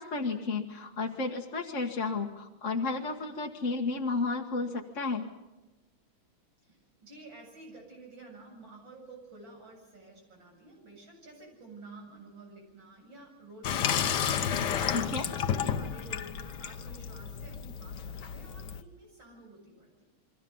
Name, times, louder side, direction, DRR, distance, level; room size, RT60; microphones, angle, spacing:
voice 1, 0.0-5.3 14.9-15.3, left 3 dB, 40° left, 1 dB, 1.8 m, -32 dB
voice 2, 6.6-20.0, right 2 dB, 65° right, 1 dB, 8.6 m, -51 dB
Water tap faucet / Sink (filling or washing), 13.6-18.8, left 8 dB, 60° left, 1.5 m, -32 dB
29.5 x 23.0 x 5.5 m, 1.1 s
omnidirectional pair, 2.2 m